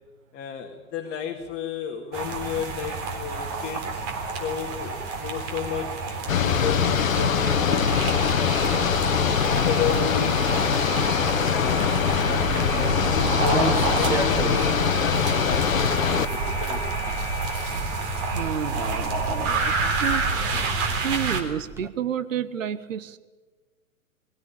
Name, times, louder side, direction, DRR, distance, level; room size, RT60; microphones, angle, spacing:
voice 1, 0.3-8.8 9.5-12.0 12.3-16.8, left 7 dB, 25° left, 2 dB, 1.9 m, -33 dB
sound 1, 2.1-21.4, right 3 dB, 30° right, 3.6 m, -29 dB
sound 2, 6.3-16.3, left 7 dB, 65° left, 1.2 m, -23 dB
Walk footsteps, 12.4-21.9, right 1 dB, 5° right, 1.6 m, -36 dB
voice 2, 18.3-19.7 20.0-20.2 21.0-23.2, right 9 dB, 60° right, 13 dB, 1.2 m, -30 dB
21.0 x 16.0 x 9.0 m, 1.3 s
figure-of-eight pair, 115°, 43 cm